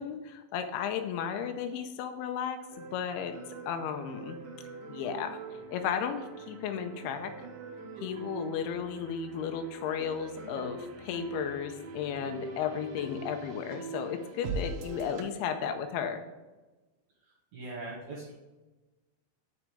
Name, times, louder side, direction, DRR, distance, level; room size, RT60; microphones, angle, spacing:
voice 1, 0.0-3.3 3.7-4.4 4.9-5.4 5.7-7.5 8.0-16.2, left 7 dB, 90° left, 6 dB, 2.3 m, -34 dB
sound 1, 2.7-15.2, right 3 dB, 90° right, 1.7 m, -43 dB
voice 2, 17.5-18.3, right 2 dB, 60° right, -4 dB, 2.0 m, -40 dB
7.4 x 5.3 x 5.0 m, 1.2 s
omnidirectional pair, 5.2 m